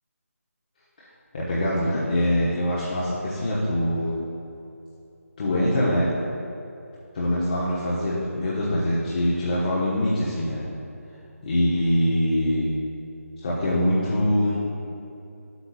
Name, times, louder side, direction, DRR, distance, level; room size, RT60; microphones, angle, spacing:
voice 1, 1.3-4.1 5.4-6.1 7.1-10.6 11.4-12.7 13.4-14.6, left 1 dB, 35° left, -8 dB, 1.2 m, -23 dB
11.0 x 8.2 x 2.4 m, 2.8 s
figure-of-eight pair, 160°, 8 cm